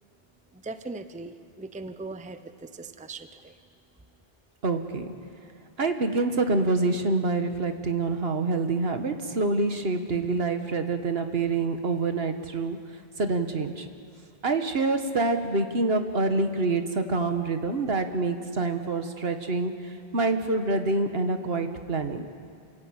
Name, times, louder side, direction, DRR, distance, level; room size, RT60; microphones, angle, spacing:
voice 1, 0.5-3.5, right 3 dB, 10° right, 10 dB, 0.7 m, -39 dB
voice 2, 4.6-5.1 5.8-12.8 13.2-13.9 14.4-19.7 20.1-22.2, right 3 dB, 75° right, 7 dB, 1.7 m, -26 dB
27.5 x 16.5 x 8.8 m, 2.4 s
omnidirectional pair, 1.0 m